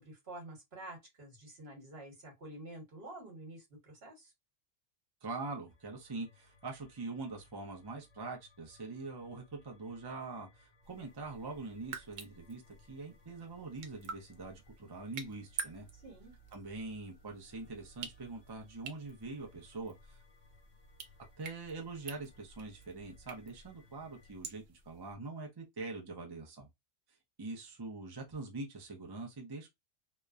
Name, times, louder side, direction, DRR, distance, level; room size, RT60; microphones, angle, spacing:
voice 1, 0.0-4.3 16.0-16.3, right 1 dB, 55° right, 1.4 m, -49 dB
voice 2, 5.2-12.6 12.9-15.9 16.5-20.2 21.4-26.7 27.4-29.7, right 3 dB, 30° right, 0.5 m, -43 dB
sound 1, 5.7-24.4, equal, 85° left, 1.1 m, -64 dB
sound 2, 10.8-25.2, right 6 dB, 80° right, 1.0 m, -50 dB
2.9 x 2.1 x 2.4 m
omnidirectional pair, 1.3 m